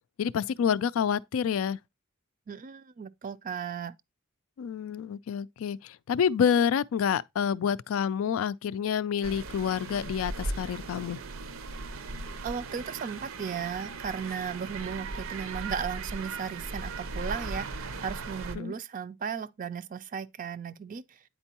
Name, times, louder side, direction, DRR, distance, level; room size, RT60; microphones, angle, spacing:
voice 1, 0.2-1.8 4.6-11.2 18.6-18.7, left 7 dB, 80° left, 0.3 m, -28 dB
voice 2, 2.5-3.9 12.4-21.2, right 7 dB, 40° right, 0.3 m, -36 dB
sound 1, 9.2-18.6, right 3 dB, 80° right, 0.6 m, -38 dB
9.0 x 4.4 x 2.8 m
head